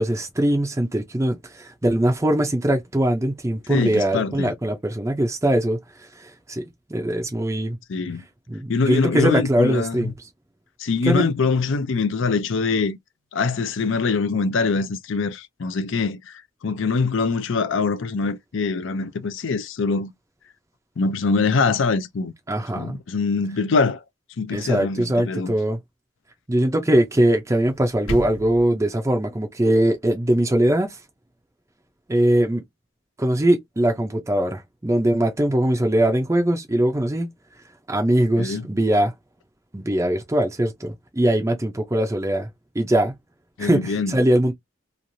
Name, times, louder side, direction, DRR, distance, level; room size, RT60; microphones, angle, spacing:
voice 1, 0.0-6.6 6.9-7.8 8.5-10.1 11.1-11.2 22.5-23.0 24.5-25.8 26.5-31.0 32.1-32.6 33.2-37.3 37.9-39.1 39.7-42.5 42.7-43.2 43.6-44.5, right 1 dB, 15° right, 0.5 m, -21 dB
voice 2, 3.7-4.5 7.9-8.2 8.7-10.1 10.8-13.0 13.3-20.1 21.0-22.3 22.8-24.0 24.4-25.5 38.4-38.7 43.6-44.2, left 4 dB, 65° left, 0.5 m, -23 dB
sound 1, 27.6-28.6, equal, 85° left, 1.1 m, -32 dB
3.1 x 2.4 x 2.6 m
head